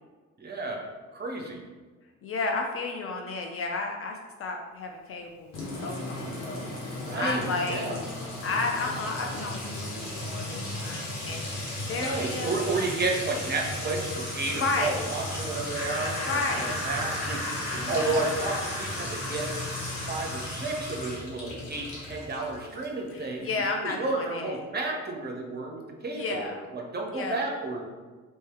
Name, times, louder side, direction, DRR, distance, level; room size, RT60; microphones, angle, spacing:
voice 1, 0.4-0.8 1.1-1.6 7.0-8.0 12.0-19.5 20.1-23.5 23.8-27.9, right 3 dB, 25° right, 0 dB, 0.8 m, -32 dB
voice 2, 2.2-5.6 5.8-6.7 7.2-7.9 8.4-11.5 11.8-12.5 14.5-15.1 16.3-16.9 17.7-18.1 23.1-24.6 26.1-26.7 27.1-27.5, left 3 dB, 35° left, 2 dB, 0.5 m, -32 dB
Sink (filling or washing) / Trickle dribble / Fill (with liquid), 5.5-23.0, left 1 dB, 50° left, 1.3 m, -35 dB
Laughter, 15.7-21.0, left 1 dB, 90° left, 0.6 m, -36 dB
3.2 x 3.1 x 4.4 m, 1.4 s
figure-of-eight pair, 45°, 39 cm